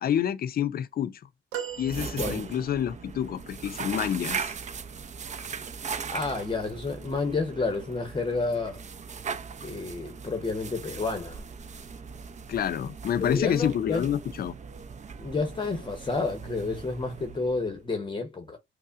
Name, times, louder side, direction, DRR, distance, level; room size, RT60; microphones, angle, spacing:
voice 1, 0.0-1.2 1.8-4.5 12.5-14.6, left 9 dB, 50° left, 0.5 m, -28 dB
sound 1, 1.5-2.9 5.3-5.5 6.8-6.9, right 9 dB, 85° right, 0.6 m, -39 dB
sound 2, 1.7-17.9, right 6 dB, 35° right, 0.5 m, -39 dB
voice 2, 6.1-8.8 9.6-11.4 13.2-14.1 15.2-18.6, left 3 dB, 25° left, 0.8 m, -30 dB
5.4 x 2.1 x 2.4 m
cardioid pair, 90°, 20 cm